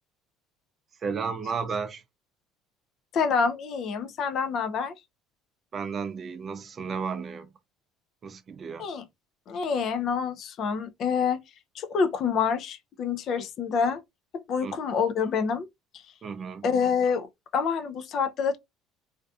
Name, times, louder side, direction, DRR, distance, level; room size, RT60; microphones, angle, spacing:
voice 1, 1.0-2.0 5.7-7.5 8.2-8.9 13.4-13.5 14.6-14.8 16.2-16.7, right 5 dB, 35° right, 0.4 m, -33 dB
voice 2, 3.1-4.9 8.8-9.1 9.5-11.4 11.7-14.0 14.5-15.7 15.9-16.0 16.6-18.6, left 6 dB, 50° left, 0.4 m, -27 dB
2.5 x 2.3 x 2.3 m
cardioid pair, 130°, 0 cm